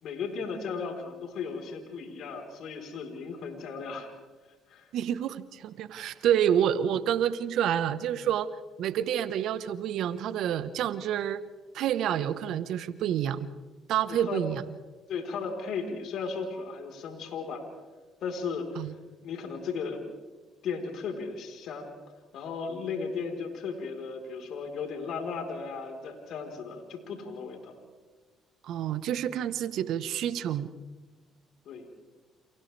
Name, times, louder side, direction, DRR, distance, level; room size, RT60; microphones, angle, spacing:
voice 1, 0.0-4.1 4.7-4.9 14.1-14.4 15.1-17.6 18.2-18.9 19.2-20.0 20.6-22.0 22.3-27.7 31.6-32.0, left 5 dB, 70° left, 2 dB, 4.3 m, -36 dB
voice 2, 4.9-8.5 8.8-11.4 11.7-13.5 13.9-14.6 18.8-18.9 28.6-30.7, right 10 dB, 70° right, 13 dB, 1.3 m, -28 dB
29.5 x 29.0 x 3.5 m, 1.3 s
hypercardioid pair, 60°, 0 cm